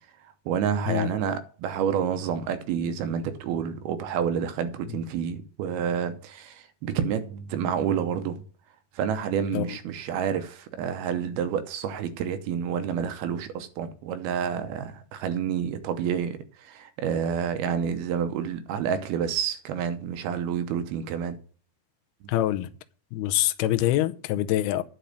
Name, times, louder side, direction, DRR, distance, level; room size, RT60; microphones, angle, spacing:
voice 1, 0.5-8.4 9.0-21.4, right 8 dB, 75° right, 2.6 m, -29 dB
voice 2, 22.3-22.7 23.1-24.8, left 14 dB, 80° left, 2.5 m, -25 dB
10.0 x 5.4 x 7.7 m
omnidirectional pair, 4.8 m